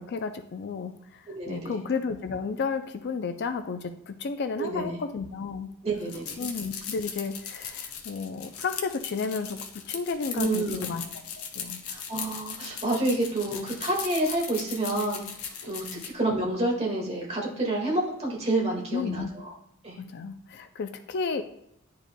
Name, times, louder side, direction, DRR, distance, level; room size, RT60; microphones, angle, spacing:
voice 1, 0.0-5.7 6.4-11.1 11.4-11.8 15.9-16.0 18.9-19.3 20.0-21.4, left 5 dB, 50° left, 9 dB, 0.4 m, -32 dB
voice 2, 1.3-1.8 4.6-5.0 5.8-6.4 10.3-10.9 11.9-15.2 15.7-19.2 19.8-20.0, right 2 dB, 30° right, -2 dB, 1.8 m, -28 dB
sound 1, 6.0-16.1, left 7 dB, 75° left, 0.9 m, -38 dB
10.5 x 4.8 x 2.2 m, 0.77 s
head